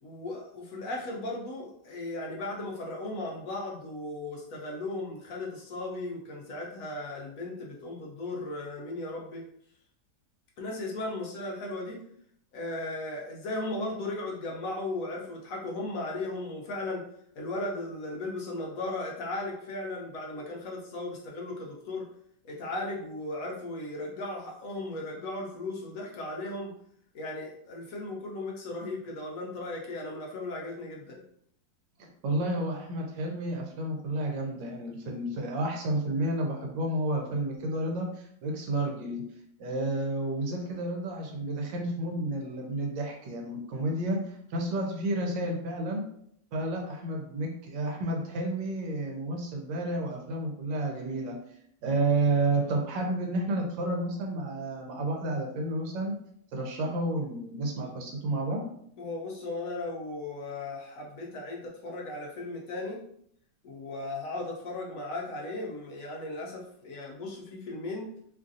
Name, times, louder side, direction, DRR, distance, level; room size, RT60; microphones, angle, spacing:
voice 1, 0.0-9.4 10.6-12.0 12.5-17.0 17.4-22.0 22.4-26.7 27.1-31.2 57.8-57.9 59.0-63.0 63.6-68.1, left 2 dB, 65° left, -2 dB, 0.9 m, -36 dB
voice 2, 32.0-39.2 39.6-46.0 46.5-51.4 51.8-56.1 56.5-58.6, right 2 dB, 90° right, 1 dB, 1.3 m, -31 dB
3.2 x 2.4 x 2.6 m, 0.69 s
omnidirectional pair, 1.9 m